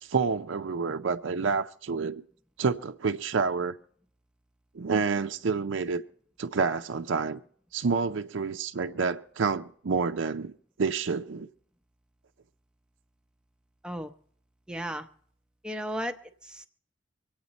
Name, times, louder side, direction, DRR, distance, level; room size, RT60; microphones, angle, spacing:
voice 1, 0.0-2.2 2.6-3.7 4.7-6.0 6.4-7.4 7.7-10.5 10.8-11.5, right 5 dB, 70° right, 0.5 m, -28 dB
voice 2, 14.7-15.1 15.6-16.2 16.4-16.7, equal, 5° right, 0.7 m, -34 dB
25.0 x 8.8 x 4.1 m
head